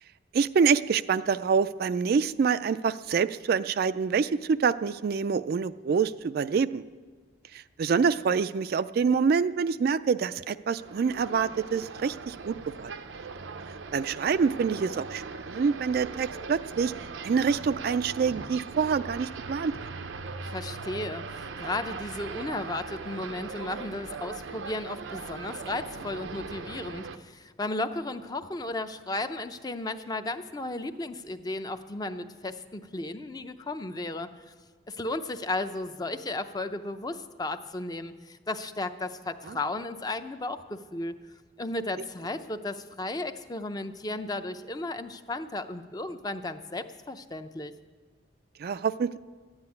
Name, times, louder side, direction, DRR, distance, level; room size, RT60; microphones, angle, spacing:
voice 1, 0.3-6.8 7.5-12.9 13.9-16.9 17.2-19.7 39.5-39.6 48.6-49.2, right 6 dB, 55° right, 13 dB, 0.3 m, -26 dB
sound 1, 10.8-27.2, right 4 dB, 85° right, 0.7 m, -40 dB
voice 2, 20.5-34.3 34.9-41.1 41.6-47.7, left 2 dB, 20° left, 9 dB, 0.5 m, -34 dB
12.5 x 9.7 x 9.4 m, 1.5 s
head